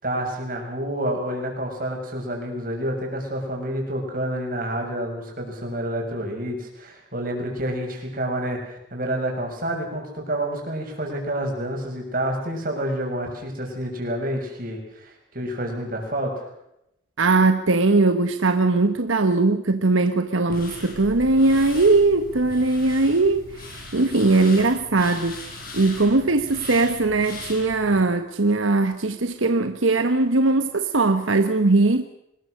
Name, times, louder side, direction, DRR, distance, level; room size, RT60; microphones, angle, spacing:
voice 1, 0.0-16.5, right 1 dB, 45° right, 6.6 m, -28 dB
voice 2, 17.2-25.4 25.7-32.0, right 3 dB, 85° right, 1.2 m, -20 dB
sound 1, 20.5-28.0, left 1 dB, 50° left, 6.1 m, -39 dB
24.5 x 21.0 x 6.6 m
head